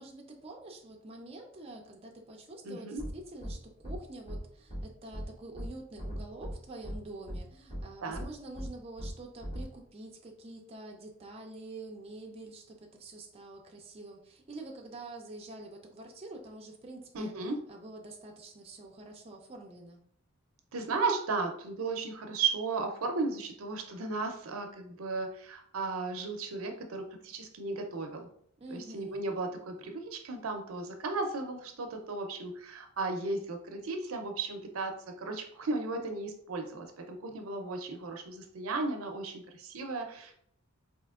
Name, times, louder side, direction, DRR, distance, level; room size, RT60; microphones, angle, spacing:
voice 1, 0.0-17.3 17.7-20.0 28.6-29.3, right 2 dB, 30° right, 1 dB, 0.5 m, -46 dB
voice 2, 2.6-3.0 8.0-8.2 17.1-17.6 20.7-28.3 28.7-40.3, right 3 dB, 80° right, 5 dB, 0.6 m, -35 dB
sound 1, 3.0-3.1 3.4-3.5 3.8-4.0 4.3-4.4 4.7-4.8 5.1-5.2 5.5-5.7 6.0-6.5 6.8-7.0 7.3-7.4 7.7-7.8 8.1-8.2 8.5-8.7 9.0-9.1 9.4-9.6, equal, 30° left, 1.4 m, -38 dB
4.3 x 2.8 x 2.3 m, 0.65 s
head